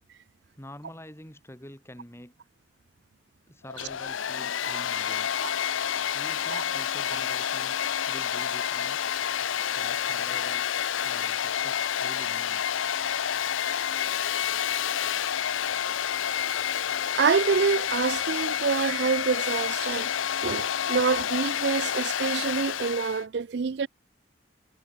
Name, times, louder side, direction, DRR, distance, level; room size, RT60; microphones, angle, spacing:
voice 1, 0.6-2.3 3.5-5.3 6.1-9.0 9.7-10.7 11.0-12.7, left 1 dB, 15° left, 5.7 m, -47 dB
Domestic sounds home sounds, 3.7-23.2, left 9 dB, 90° left, 0.6 m, -29 dB
voice 2, 17.2-20.1 20.4-23.9, right 5 dB, 60° right, 0.4 m, -26 dB
head